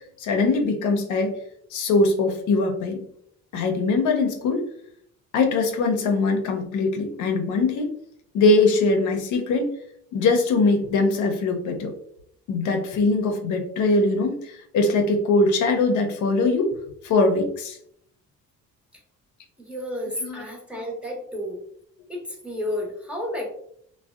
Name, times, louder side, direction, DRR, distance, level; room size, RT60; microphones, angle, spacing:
voice 1, 0.2-1.3 1.7-3.0 3.5-4.7 5.3-7.9 8.3-9.7 10.1-11.9 12.5-16.7 17.0-17.8 20.2-20.4, left 3 dB, 80° left, 3 dB, 0.6 m, -22 dB
voice 2, 19.7-21.6 22.1-23.5, left 1 dB, 5° right, -2 dB, 0.7 m, -31 dB
2.6 x 2.1 x 2.3 m, 0.68 s
cardioid pair, 90°, 30 cm